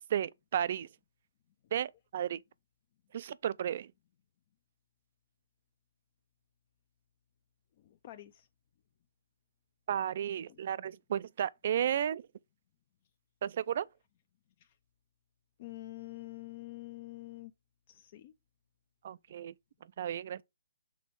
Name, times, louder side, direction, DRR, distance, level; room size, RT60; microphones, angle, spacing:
voice 1, 0.1-0.9 1.7-2.4 3.1-3.9 9.9-12.2 13.4-13.9 19.0-19.5 20.0-20.4, right 9 dB, 40° right, 0.4 m, -33 dB
voice 2, 7.8-8.5 10.5-10.6 14.6-14.8 15.6-17.5 17.9-18.3, left 18 dB, 30° left, 0.5 m, -47 dB
6.3 x 4.1 x 5.2 m
hypercardioid pair, 170°, 0 cm